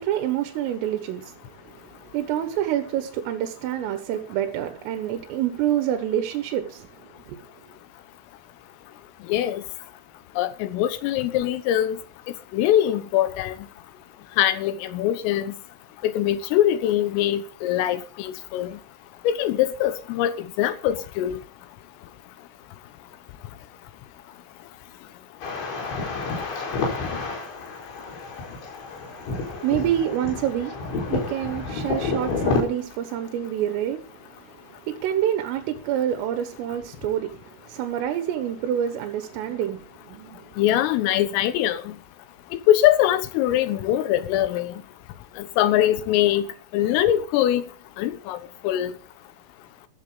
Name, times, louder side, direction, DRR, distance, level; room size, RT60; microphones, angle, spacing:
voice 1, 0.0-7.4 29.1-40.5, right 11 dB, 85° right, 4.0 m, -28 dB
voice 2, 9.3-9.6 10.4-12.0 12.5-13.6 14.4-15.5 16.0-18.8 19.3-21.4 40.6-42.0 42.5-44.7 45.4-46.5 46.7-47.6 48.0-48.9, left 12 dB, 90° left, 3.7 m, -22 dB
sound 1, 25.4-32.6, left 4 dB, 65° left, 6.9 m, -29 dB
14.5 x 13.5 x 3.9 m
omnidirectional pair, 5.7 m